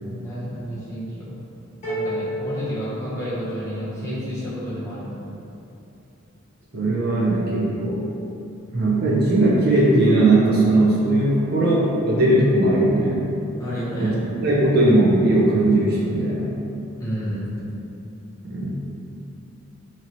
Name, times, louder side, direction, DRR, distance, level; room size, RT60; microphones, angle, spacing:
voice 1, 0.0-1.4 1.8-5.3 13.6-14.1 17.0-17.4, equal, 15° left, -10 dB, 0.7 m, -30 dB
sound 1, 1.8-3.8, equal, 35° left, 1.1 m, -30 dB
voice 2, 6.7-8.0 8.7-13.2 14.0-14.2 14.4-16.5 18.4-18.7, right 2 dB, 45° right, -4 dB, 0.5 m, -18 dB
2.9 x 2.9 x 2.6 m, 2.8 s
head